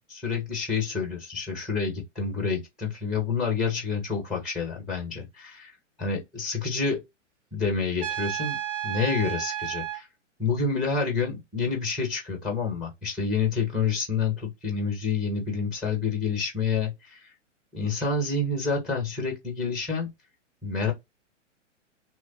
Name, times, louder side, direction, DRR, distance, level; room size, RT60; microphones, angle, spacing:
voice 1, 0.0-5.7 6.0-7.0 7.5-8.6 8.8-10.1 10.4-17.3 17.7-20.1 20.6-20.9, left 5 dB, ahead, 0.4 m, -28 dB
Trumpet, 8.0-10.0, right 11 dB, 70° right, 0.8 m, -32 dB
2.9 x 2.3 x 2.6 m
figure-of-eight pair, 110°, 37 cm